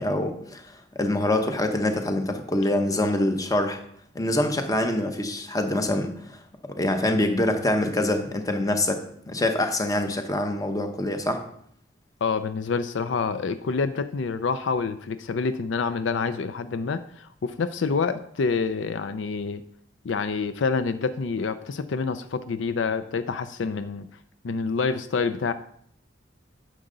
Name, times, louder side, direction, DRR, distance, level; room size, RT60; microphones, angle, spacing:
voice 1, 0.0-3.8 4.1-11.4, left 1 dB, 20° left, 6 dB, 0.9 m, -25 dB
voice 2, 12.2-19.6 20.0-24.1 24.4-25.5, left 5 dB, 75° left, 12 dB, 0.4 m, -27 dB
9.9 x 6.6 x 3.9 m, 0.66 s
head